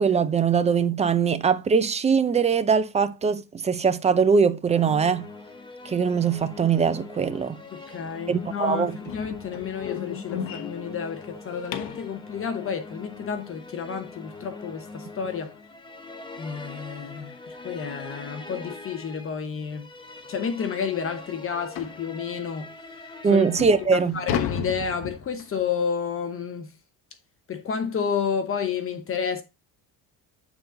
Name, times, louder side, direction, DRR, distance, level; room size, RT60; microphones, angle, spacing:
voice 1, 0.0-5.3 5.9-7.6 8.3-9.0 23.2-24.2, right 6 dB, 20° right, 0.4 m, -22 dB
sound 1, 4.7-23.9, left 3 dB, 10° left, 0.9 m, -43 dB
voice 2, 7.7-15.5 16.4-19.9 20.3-22.7 23.2-23.4 23.9-26.7 27.5-29.4, left 6 dB, 35° left, 1.0 m, -30 dB
sound 2, 9.0-12.1 15.0-15.1 15.5-15.7 16.1-16.2 16.7-16.8 17.9-18.0 18.4-18.5 19.2-19.3 19.6-19.7 20.2-20.3 21.8-22.1 22.8-22.9 23.4-25.7, left 8 dB, 65° left, 1.1 m, -34 dB
9.0 x 4.2 x 3.8 m
cardioid pair, 145°, 39 cm